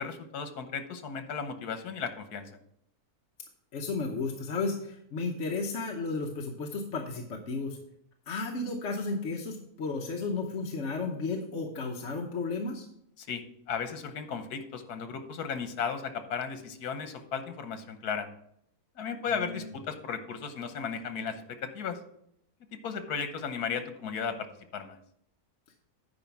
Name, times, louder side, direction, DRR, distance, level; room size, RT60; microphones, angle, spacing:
voice 1, 0.0-2.5 13.2-18.3 19.0-22.0 22.7-24.5 24.7-25.0, left 6 dB, 85° left, 8 dB, 1.5 m, -35 dB
voice 2, 3.7-7.8 8.3-12.9 19.3-19.7, left 3 dB, 55° left, 1 dB, 1.1 m, -33 dB
9.4 x 4.9 x 5.8 m, 0.73 s
omnidirectional pair, 1.6 m